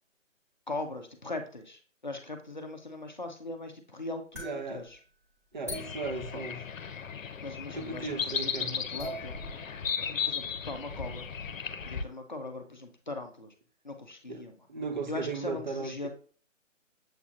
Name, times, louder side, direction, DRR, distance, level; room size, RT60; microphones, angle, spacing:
voice 1, 0.7-5.0 6.3-6.4 7.4-9.4 10.0-11.3 11.9-13.5 13.8-14.6 15.1-16.1, left 2 dB, 40° left, 5 dB, 0.5 m, -40 dB
sound 1, 4.3-6.9 7.2-8.0 8.3-8.4 8.8-9.9 10.6-10.7 11.2-11.3 11.6-12.0, equal, 10° right, 1.1 m, -45 dB
voice 2, 4.4-4.8 5.5-6.6 7.7-8.8 14.3-14.4 14.7-16.1, right 3 dB, 35° right, 5 dB, 0.6 m, -36 dB
sound 2, 5.7-12.0, left 6 dB, 85° left, 0.7 m, -35 dB
7.1 x 2.8 x 2.4 m, 0.41 s
hypercardioid pair, 170°, 39 cm